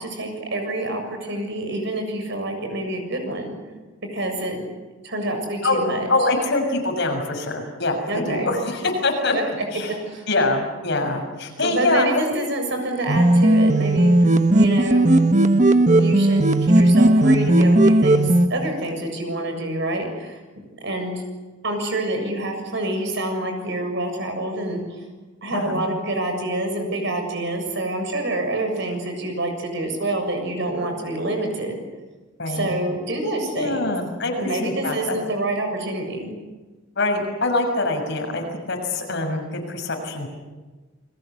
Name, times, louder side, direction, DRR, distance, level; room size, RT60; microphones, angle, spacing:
voice 1, 0.0-3.5 4.1-4.6 5.0-6.1 8.1-8.6 9.3-9.4 10.1-10.2 11.6-14.1 14.6-15.1 15.9-20.4 20.8-21.2 21.6-25.0 25.4-31.8 32.5-33.9 34.4-36.3, right 1 dB, 65° right, 5 dB, 7.2 m, -27 dB
voice 2, 6.1-9.3 9.7-10.0 10.3-12.4 25.5-25.8 32.4-32.7 33.5-35.2 37.0-38.4 38.7-40.3, left 2 dB, 60° left, 3 dB, 6.5 m, -24 dB
sound 1, 13.1-18.5, right 1 dB, 40° right, 1.3 m, -16 dB
29.5 x 21.5 x 8.4 m, 1.2 s
head